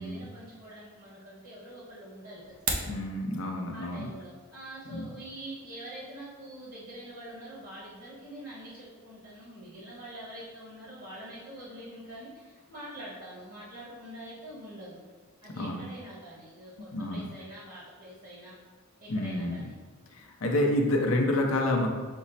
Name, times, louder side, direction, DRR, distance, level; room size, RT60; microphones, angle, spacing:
voice 1, 0.0-3.0 3.7-15.0 15.4-18.5 19.0-19.7, right 1 dB, 55° right, -7 dB, 1.1 m, -45 dB
sound 1, 2.4-3.0, right 3 dB, 85° right, 0.7 m, -31 dB
voice 2, 2.8-4.1 4.9-5.1 15.6-15.8 16.9-17.3 19.1-19.6 20.1-21.9, left 1 dB, 75° left, 1 dB, 0.5 m, -28 dB
6.0 x 2.1 x 4.0 m, 1.4 s
head